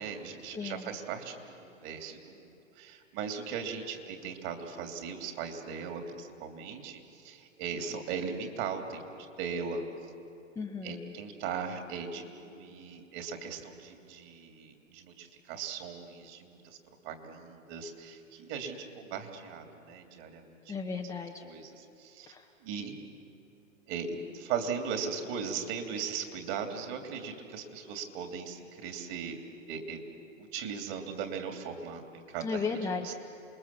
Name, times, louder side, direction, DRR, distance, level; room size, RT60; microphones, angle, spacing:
voice 1, 0.0-9.0 9.4-9.9 10.8-16.8 17.0-20.7 21.4-22.3 22.6-22.9 23.9-29.4 29.7-30.0 30.4-32.6 33.0-33.1, right 6 dB, 40° right, 5 dB, 3.0 m, -38 dB
voice 2, 0.5-1.0 10.6-11.1 20.7-21.4 22.3-22.5 32.4-33.1, left 4 dB, 10° left, 1 dB, 0.8 m, -35 dB
28.0 x 20.5 x 7.4 m, 2.9 s
hypercardioid pair, 120°, 40 cm